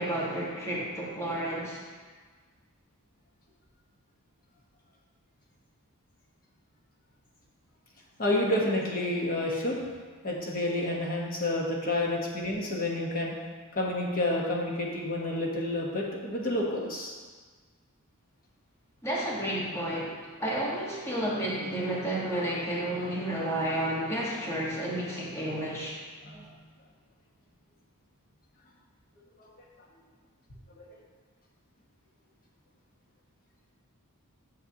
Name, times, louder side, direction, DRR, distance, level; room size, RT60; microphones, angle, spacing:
voice 1, 0.0-1.8 19.0-25.9, right 1 dB, 10° left, -6 dB, 1.4 m, -31 dB
voice 2, 8.2-9.8 10.2-13.3 13.7-17.1 26.2-26.5 30.8-30.9, left 1 dB, 40° left, -2 dB, 1.1 m, -29 dB
8.9 x 6.7 x 2.8 m, 1.5 s
head